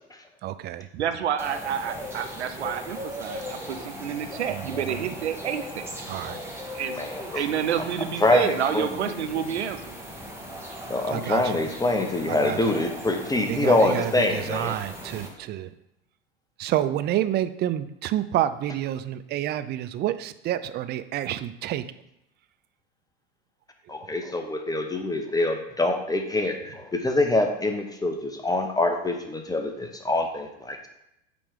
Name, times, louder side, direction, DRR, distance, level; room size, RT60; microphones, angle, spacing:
voice 1, 0.4-1.0 4.5-5.2 6.1-6.4 11.1-11.6 12.3-12.6 13.5-15.7 16.6-21.9, right 12 dB, 30° right, 13 dB, 0.5 m, -29 dB
voice 2, 1.0-5.9 6.7-7.0 7.3-10.0, right 8 dB, 85° right, 9 dB, 0.6 m, -29 dB
sound 1, 1.4-15.3, equal, 10° right, 1.7 m, -39 dB
voice 3, 6.9-7.4 8.2-8.9 10.9-14.8 23.9-30.9, left 2 dB, 10° left, 4 dB, 0.8 m, -25 dB
8.6 x 3.4 x 5.0 m, 0.83 s
hypercardioid pair, 85°, 32 cm